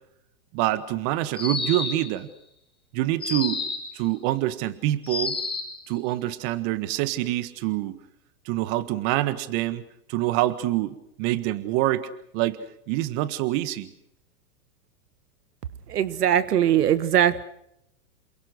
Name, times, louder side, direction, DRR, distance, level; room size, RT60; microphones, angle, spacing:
voice 1, 0.5-2.3 2.9-3.6 3.9-5.4 5.9-8.0 8.4-9.8 10.1-13.9, right 15 dB, 45° right, 14 dB, 1.7 m, -26 dB
sound 1, 1.3-2.2 3.2-4.0 5.0-5.8, left 4 dB, 10° left, 7.5 m, -29 dB
voice 2, 15.9-17.4, right 10 dB, 90° right, 16 dB, 1.4 m, -21 dB
29.0 x 22.0 x 6.3 m, 0.76 s
hypercardioid pair, 125°, 46 cm